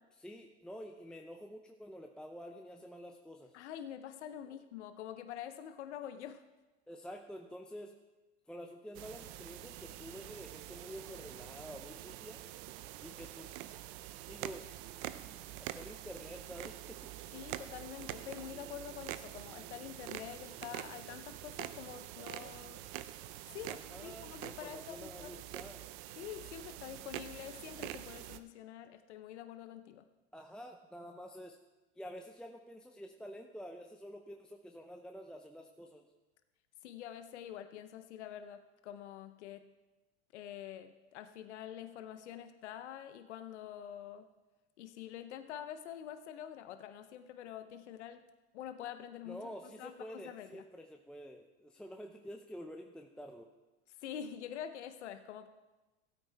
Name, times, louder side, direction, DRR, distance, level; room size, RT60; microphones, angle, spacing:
voice 1, 0.1-3.6 6.9-8.0 8.5-12.4 13.0-13.6 14.3-14.7 15.6-17.0 23.7-25.9 30.3-31.6 32.0-36.1 49.3-53.5, equal, ahead, 3 dB, 0.6 m, -49 dB
voice 2, 3.5-6.4 17.3-22.8 23.5-25.4 26.2-30.0 36.8-39.7 40.3-44.3 44.8-48.3 48.5-50.6 54.0-55.5, left 10 dB, 85° left, 9 dB, 0.8 m, -46 dB
sound 1, 8.9-28.4, right 14 dB, 55° right, 0.7 m, -46 dB
15.5 x 8.8 x 3.4 m, 1.1 s
hypercardioid pair, 105°, 34 cm